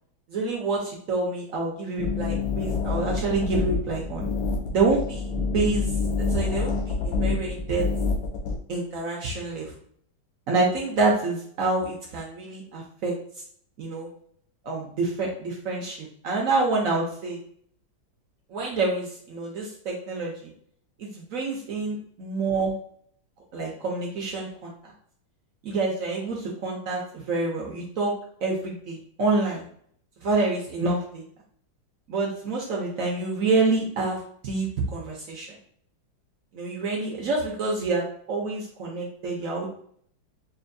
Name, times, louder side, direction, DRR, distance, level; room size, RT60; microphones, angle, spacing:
voice 1, 0.3-4.2 4.7-5.9 6.2-7.9 8.7-9.7 10.5-13.2 13.8-14.1 14.6-17.4 18.5-20.5 21.0-22.8 23.5-24.7 25.6-28.1 28.4-29.6 30.2-31.2 32.1-35.5 36.5-39.7, right 3 dB, 70° right, -2 dB, 0.7 m, -27 dB
sound 1, 2.0-8.6, left 4 dB, 70° left, 1.4 m, -27 dB
5.5 x 2.4 x 2.6 m, 0.62 s
omnidirectional pair, 2.3 m